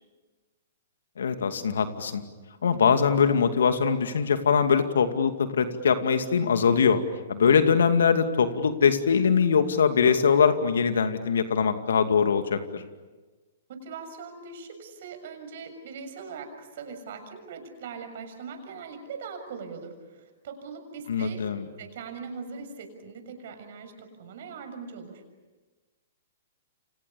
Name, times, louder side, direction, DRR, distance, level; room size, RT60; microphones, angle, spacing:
voice 1, 1.2-2.2 2.6-7.0 7.3-12.8 21.1-21.6, left 6 dB, 75° left, 8 dB, 2.5 m, -22 dB
voice 2, 13.7-21.4 21.8-25.2, right 5 dB, 60° right, 7 dB, 6.7 m, -41 dB
29.5 x 27.0 x 7.2 m, 1.3 s
hypercardioid pair, 120°, 0 cm